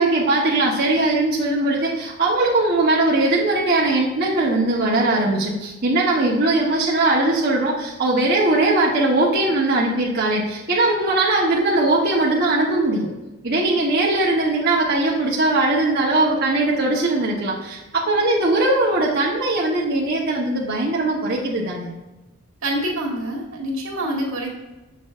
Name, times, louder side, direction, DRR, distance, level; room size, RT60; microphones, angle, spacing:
voice 1, 0.0-13.1 13.4-21.9, right 2 dB, 50° right, -5 dB, 1.0 m, -20 dB
voice 2, 22.6-24.5, right 1 dB, 80° right, -1 dB, 1.8 m, -26 dB
7.2 x 5.9 x 2.4 m, 1.1 s
head